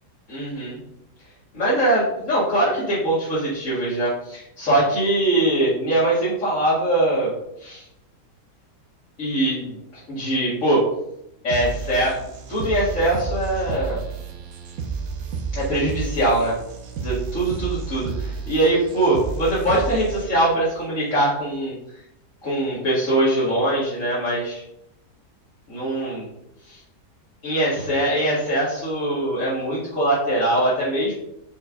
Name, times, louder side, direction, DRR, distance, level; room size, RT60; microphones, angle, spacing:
voice 1, 0.3-0.8 1.5-7.3 7.6-7.8 9.2-9.8 10.1-10.8 11.4-12.1 12.5-14.0 15.5-16.6 17.0-21.7 22.4-24.6 25.7-26.3 26.7-26.8 27.4-31.1, right 1 dB, 50° left, -9 dB, 2.2 m, -22 dB
sound 1, 11.5-20.5, right 5 dB, 65° right, 1.2 m, -31 dB
5.6 x 4.4 x 4.8 m, 0.83 s
omnidirectional pair, 1.8 m